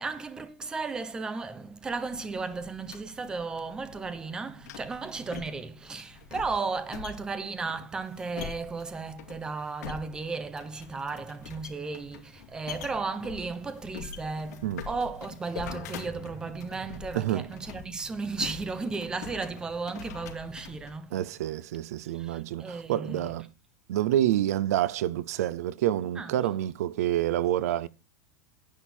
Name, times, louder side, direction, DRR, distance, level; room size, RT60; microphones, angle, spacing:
voice 1, 0.0-21.2 22.1-23.4 26.2-26.3, right 4 dB, 10° right, 0.9 m, -35 dB
sound 1, 1.9-21.0, left 7 dB, 75° left, 2.8 m, -45 dB
voice 2, 17.1-17.5 21.1-23.5 23.9-27.9, right 12 dB, 70° right, 0.6 m, -28 dB
10.5 x 8.9 x 4.4 m
supercardioid pair, 180°, 9 cm